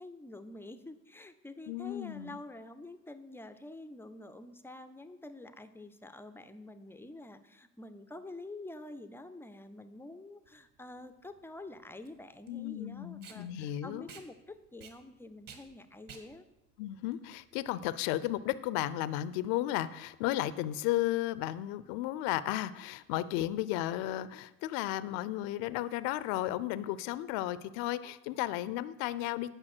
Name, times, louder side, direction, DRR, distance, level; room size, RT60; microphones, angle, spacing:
voice 1, 0.0-16.4, left 2 dB, 5° left, 11 dB, 0.4 m, -47 dB
voice 2, 1.7-2.4 12.5-14.1 16.8-29.5, left 14 dB, 60° left, 16 dB, 0.6 m, -34 dB
Packing tape duct tape, 10.5-17.9, right 6 dB, 45° right, 1.6 m, -55 dB
9.0 x 5.6 x 6.0 m, 0.94 s
hypercardioid pair, 80°, 47 cm